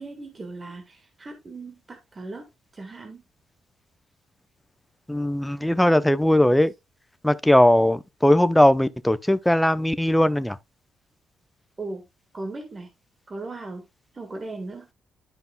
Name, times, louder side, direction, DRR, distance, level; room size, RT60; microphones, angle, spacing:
voice 1, 0.0-3.2 11.8-12.1 12.3-12.9 13.3-13.8 14.1-14.9, right 2 dB, 30° right, 1.5 m, -37 dB
voice 2, 5.1-6.7 7.2-10.6, left 1 dB, 5° left, 0.6 m, -19 dB
12.0 x 5.3 x 2.2 m
cardioid pair, 90°, 0 cm